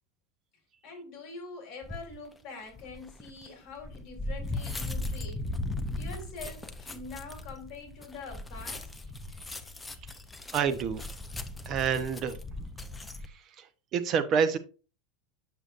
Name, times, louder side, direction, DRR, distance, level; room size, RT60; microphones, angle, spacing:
voice 1, 0.8-5.4 5.9-8.9, left 3 dB, 40° left, 3.2 m, -44 dB
sound 1, 1.8-2.2 2.7-13.3, left 2 dB, 10° left, 0.5 m, -38 dB
voice 2, 10.5-11.1 11.7-12.4 13.6-13.7 13.9-14.6, right 6 dB, 30° right, 0.7 m, -27 dB
7.7 x 6.8 x 2.5 m
supercardioid pair, 160°, 0 cm